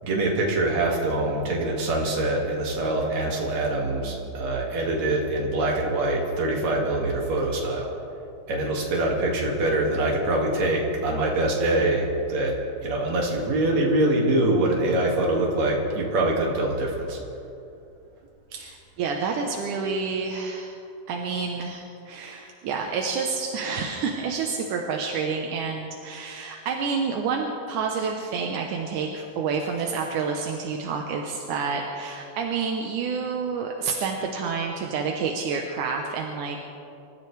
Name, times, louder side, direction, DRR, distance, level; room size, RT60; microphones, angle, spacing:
voice 1, 0.0-7.9 8.5-17.2, right 2 dB, 60° right, -1 dB, 3.4 m, -24 dB
voice 2, 18.5-20.8 21.1-36.6, right 5 dB, 80° right, 1 dB, 2.5 m, -29 dB
27.0 x 14.0 x 3.4 m, 2.7 s
omnidirectional pair, 3.5 m